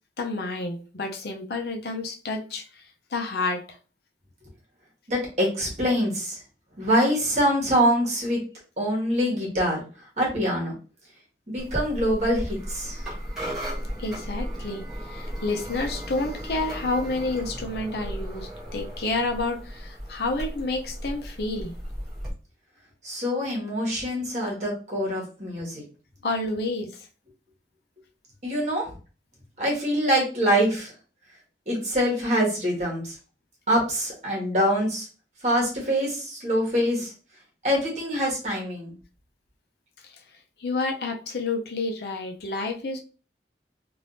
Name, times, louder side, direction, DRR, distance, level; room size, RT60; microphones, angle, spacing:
voice 1, 0.2-2.8 3.1-3.6 14.0-21.8 26.2-27.1 40.0-40.1 40.6-43.0, left 2 dB, 65° left, 3 dB, 0.6 m, -29 dB
voice 2, 5.1-6.4 6.8-8.4 8.8-9.8 10.2-10.7 11.5-13.0 23.0-25.8 28.4-28.9 29.6-30.9 31.7-33.1 33.7-35.1 35.4-37.1 37.6-38.9, equal, 40° right, -3 dB, 1.4 m, -24 dB
sound 1, 11.6-22.3, equal, 5° right, 1.5 m, -35 dB
3.4 x 2.6 x 2.6 m, 0.36 s
head